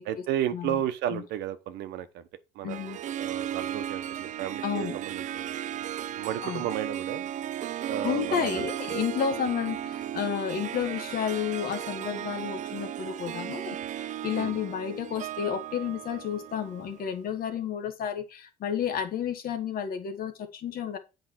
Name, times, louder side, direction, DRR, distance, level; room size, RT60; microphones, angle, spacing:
voice 1, 0.0-2.2 2.5-2.8 3.2-5.5 6.2-7.3 7.9-8.7 14.3-14.6, right 11 dB, 85° right, 1.0 m, -33 dB
voice 2, 2.6-3.0 4.6-5.0 6.4-6.7 8.0-21.0, left 8 dB, 60° left, 1.5 m, -31 dB
Harp, 2.7-17.2, right 11 dB, 45° right, 0.4 m, -35 dB
8.1 x 4.8 x 4.6 m
cardioid pair, 110°, 17 cm